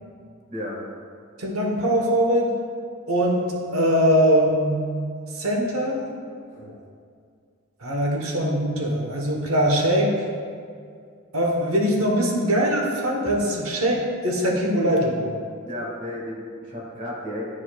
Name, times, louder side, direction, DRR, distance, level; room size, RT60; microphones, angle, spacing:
voice 1, 0.5-0.8 6.5-6.6 15.6-17.4, left 1 dB, 40° right, -4 dB, 1.6 m, -33 dB
voice 2, 1.4-2.5 3.1-4.8 5.3-6.1 6.6-6.7 7.8-10.2 11.3-15.3, equal, 85° right, 0 dB, 1.0 m, -22 dB
11.5 x 5.0 x 2.3 m, 2.2 s
head